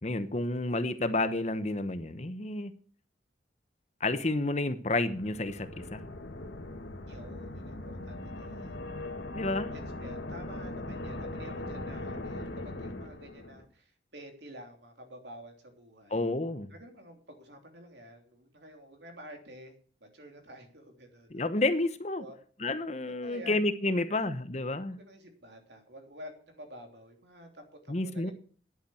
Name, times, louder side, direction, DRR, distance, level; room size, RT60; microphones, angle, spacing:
voice 1, 0.0-2.7 4.0-6.0 9.3-9.7 16.1-16.7 21.3-22.2 22.6-25.0 27.9-28.3, left 2 dB, 35° left, 0.9 m, -30 dB
sound 1, 5.1-13.6, left 2 dB, 75° left, 2.1 m, -40 dB
voice 2, 7.1-8.8 9.7-16.3 16.7-21.5 22.2-22.4 23.2-23.6 24.1-24.3 24.9-28.3, equal, 65° right, 3.1 m, -50 dB
11.0 x 8.7 x 7.8 m
head